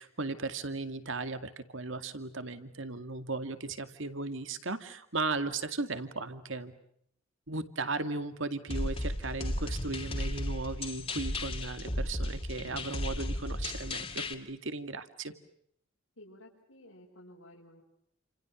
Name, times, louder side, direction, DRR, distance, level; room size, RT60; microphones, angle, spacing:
voice 1, 0.0-6.7 7.5-15.3, right 3 dB, 65° right, 10 dB, 2.2 m, -36 dB
sound 1, 8.7-14.3, left 1 dB, 30° left, 2.6 m, -34 dB
voice 2, 16.2-17.8, left 1 dB, 85° left, -4 dB, 6.0 m, -54 dB
30.0 x 27.5 x 6.3 m, 0.69 s
head